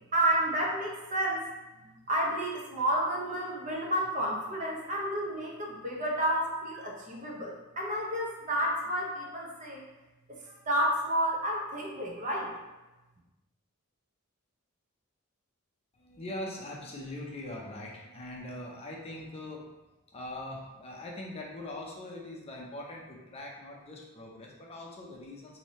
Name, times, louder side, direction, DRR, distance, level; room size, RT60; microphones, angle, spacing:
voice 1, 0.1-1.5 1.8-9.8 10.3-12.5, right 1 dB, 40° right, -2 dB, 0.7 m, -31 dB
voice 2, 15.9-19.7 20.1-25.6, left 1 dB, 30° left, -2 dB, 0.6 m, -42 dB
3.3 x 2.7 x 4.1 m, 1.1 s
head